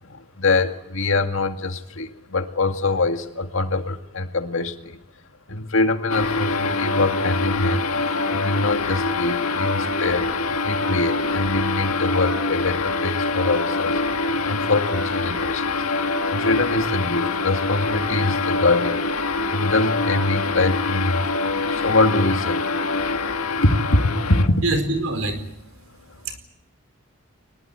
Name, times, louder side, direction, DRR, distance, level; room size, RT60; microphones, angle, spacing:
voice 1, 0.0-5.0 5.5-10.3 10.6-14.0 14.4-15.7 16.3-19.0 19.5-22.8 23.6-24.6, left 2 dB, 65° left, 7 dB, 2.1 m, -23 dB
sound 1, 6.1-24.5, left 3 dB, 85° left, 1.7 m, -24 dB
voice 2, 24.6-25.5 26.1-26.4, right 2 dB, 75° right, 8 dB, 4.6 m, -25 dB
24.0 x 20.5 x 9.3 m, 0.75 s
head